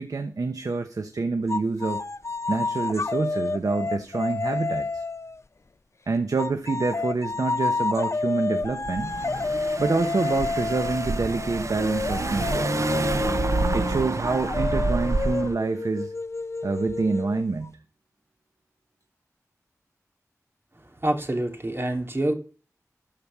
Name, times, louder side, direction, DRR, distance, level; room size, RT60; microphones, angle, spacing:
voice 1, 0.0-2.0 2.5-5.0 6.1-9.1 9.8-12.7 13.7-16.1 16.6-17.8, right 4 dB, 80° right, 1.0 m, -27 dB
sound 1, 1.5-5.4 6.4-17.7, left 3 dB, 50° left, 0.5 m, -30 dB
Car / Engine, 8.6-15.5, right 3 dB, 60° right, 0.8 m, -28 dB
voice 2, 21.0-22.3, right 1 dB, 45° right, 2.8 m, -26 dB
13.5 x 5.1 x 8.2 m
wide cardioid pair, 55°, 6 cm